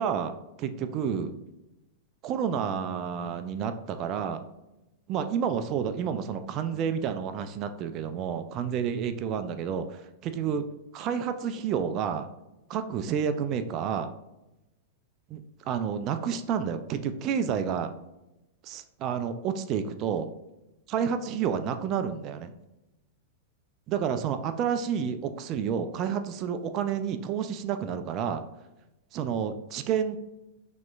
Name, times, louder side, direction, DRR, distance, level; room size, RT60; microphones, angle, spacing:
voice 1, 0.0-1.4 2.2-4.4 5.1-10.6 10.9-12.3 12.7-14.1 15.3-17.9 18.6-20.3 20.9-22.5 23.9-28.4 29.1-30.2, right 7 dB, 40° right, 9 dB, 0.3 m, -30 dB
5.9 x 2.9 x 2.4 m, 0.96 s
hypercardioid pair, 100°, 0 cm